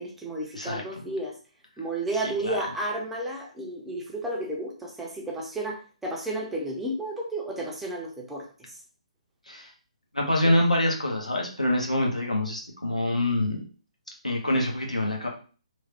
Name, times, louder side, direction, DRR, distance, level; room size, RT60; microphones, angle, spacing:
voice 1, 0.0-1.3 1.8-8.4, right 1 dB, 5° right, -2 dB, 0.4 m, -32 dB
voice 2, 0.5-1.0 2.1-2.6 9.5-9.7 10.1-13.6 14.2-15.3, left 1 dB, 90° left, -1 dB, 0.8 m, -26 dB
3.1 x 2.0 x 2.8 m, 0.37 s
figure-of-eight pair, 135°, 4 cm